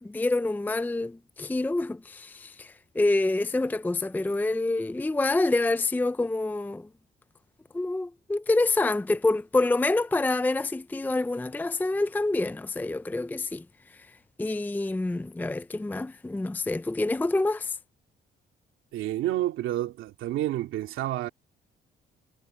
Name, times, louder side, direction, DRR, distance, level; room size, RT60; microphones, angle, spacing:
voice 1, 0.0-6.9 7.7-13.6 14.4-17.8, left 2 dB, 10° left, 0.5 m, -27 dB
voice 2, 18.9-21.3, right 13 dB, 90° right, 2.7 m, -29 dB
cardioid pair, 90°, 20 cm